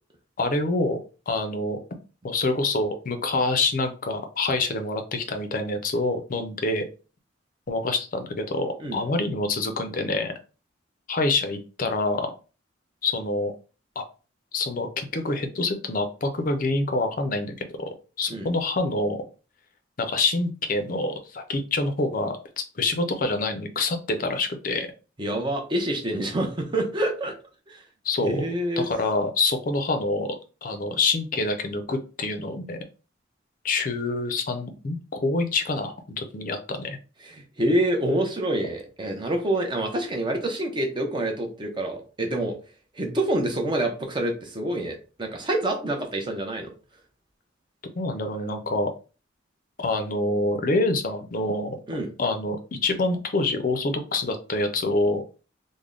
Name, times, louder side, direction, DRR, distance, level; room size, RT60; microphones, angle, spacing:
voice 1, 0.4-1.0 1.3-1.8 2.2-6.8 7.7-10.3 11.1-12.3 13.0-13.5 14.0-14.1 14.5-17.5 18.2-19.2 20.0-24.9 28.0-28.5 28.8-30.4 30.6-32.8 33.6-37.0 48.0-48.9 49.8-51.7 52.2-55.2, left 2 dB, 45° left, 7 dB, 0.5 m, -26 dB
voice 2, 25.2-27.3 27.7-27.8 28.2-28.9 37.2-42.6 42.9-46.7 51.9-52.1, right 1 dB, 25° right, 3 dB, 0.6 m, -27 dB
3.4 x 2.1 x 3.7 m, 0.35 s
head